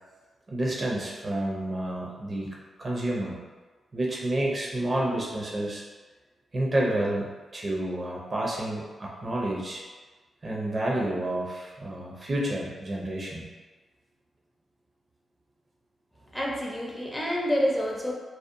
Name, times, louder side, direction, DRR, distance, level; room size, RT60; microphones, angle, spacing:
voice 1, 0.5-3.4 3.9-5.8 6.5-9.9 10.4-13.5, right 1 dB, 40° right, -2 dB, 0.5 m, -30 dB
voice 2, 16.3-18.1, equal, 10° left, -3 dB, 0.5 m, -28 dB
2.6 x 2.0 x 2.5 m, 1.3 s
cardioid pair, 75°, 0 cm